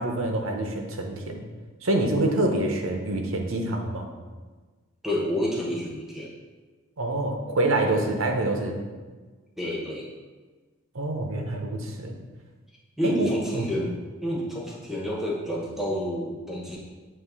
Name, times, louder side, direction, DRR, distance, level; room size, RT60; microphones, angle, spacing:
voice 1, 0.0-1.4 1.8-4.1 7.0-8.8 10.9-12.1 13.0-13.7, right 2 dB, 65° right, 3 dB, 0.8 m, -26 dB
voice 2, 5.0-6.3 9.6-10.1 13.0-13.9 14.2-16.8, equal, ahead, -3 dB, 0.9 m, -29 dB
7.4 x 3.2 x 4.7 m, 1.4 s
head